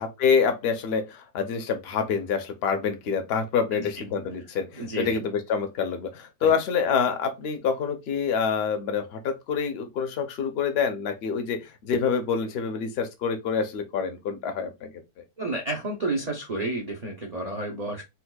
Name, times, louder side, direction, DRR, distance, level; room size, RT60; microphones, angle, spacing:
voice 1, 0.0-14.9, left 6 dB, 65° left, 0.6 m, -27 dB
voice 2, 4.8-5.2 6.4-6.5 15.4-18.0, right 2 dB, 70° right, 0.3 m, -31 dB
4.2 x 2.3 x 2.2 m
omnidirectional pair, 1.8 m